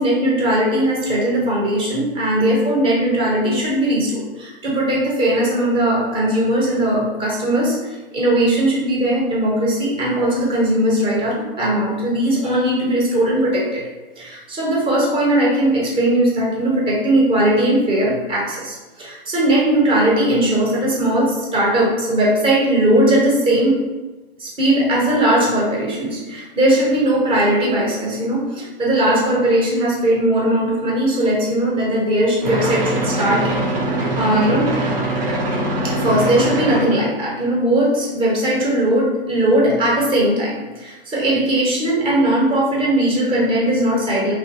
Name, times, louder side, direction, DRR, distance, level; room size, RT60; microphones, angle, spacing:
voice 1, 0.0-7.8 8.1-13.8 14.2-23.8 24.4-33.5 34.2-34.8 35.8-44.3, right 1 dB, 20° right, -4 dB, 0.9 m, -19 dB
sound 1, 32.4-37.0, right 1 dB, 45° right, 0.8 m, -22 dB
3.0 x 2.3 x 2.9 m, 1.2 s
figure-of-eight pair, 115°, 29 cm